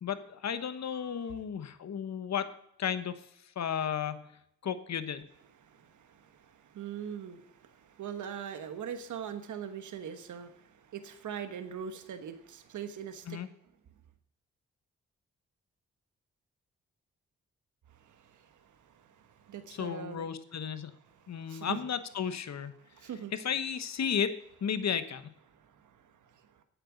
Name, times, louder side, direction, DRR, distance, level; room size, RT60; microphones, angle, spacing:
voice 1, 0.0-3.2 3.6-4.3 4.6-5.3 13.3-13.5 19.7-20.9 21.3-22.7 23.3-24.3 24.6-25.3, left 7 dB, 60° left, 12 dB, 1.1 m, -33 dB
voice 2, 5.6-13.4 17.9-20.3 21.1-21.8 22.8-23.3 25.5-26.6, right 8 dB, 70° right, 8 dB, 1.2 m, -43 dB
9.4 x 7.9 x 9.3 m, 0.74 s
supercardioid pair, 45°, 31 cm